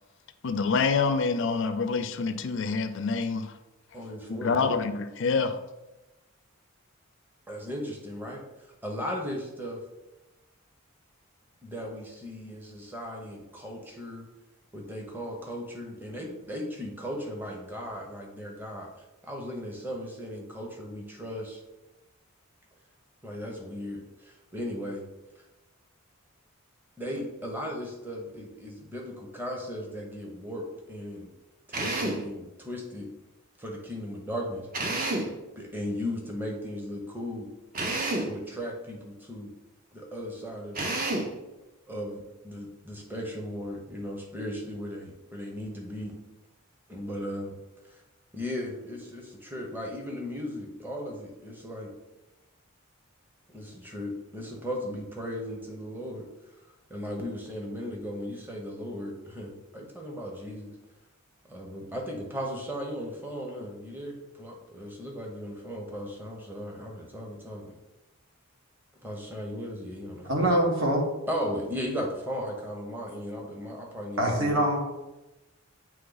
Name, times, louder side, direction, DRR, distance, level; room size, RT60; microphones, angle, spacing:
voice 1, 0.4-3.5 4.4-5.6, left 4 dB, 60° left, 10 dB, 0.4 m, -26 dB
voice 2, 3.9-4.7 7.5-8.4 8.8-9.8 11.6-14.3 14.7-18.9 19.2-21.6 23.2-25.1 27.0-31.3 31.7-33.1 33.6-35.1 35.6-37.5 38.2-39.5 39.9-40.8 41.9-46.2 46.9-47.6 47.8-48.0 48.3-51.9 53.5-56.3 56.9-60.7 61.5-67.7 69.0-70.5 71.3-74.6, equal, 10° right, 0 dB, 0.8 m, -37 dB
Drill, 31.7-32.3 34.7-35.4 37.7-38.4 40.7-41.4, right 2 dB, 40° right, 0.8 m, -29 dB
voice 3, 70.3-71.0 74.2-74.8, right 1 dB, 65° right, 0 dB, 1.4 m, -24 dB
8.6 x 3.1 x 3.9 m, 1.0 s
head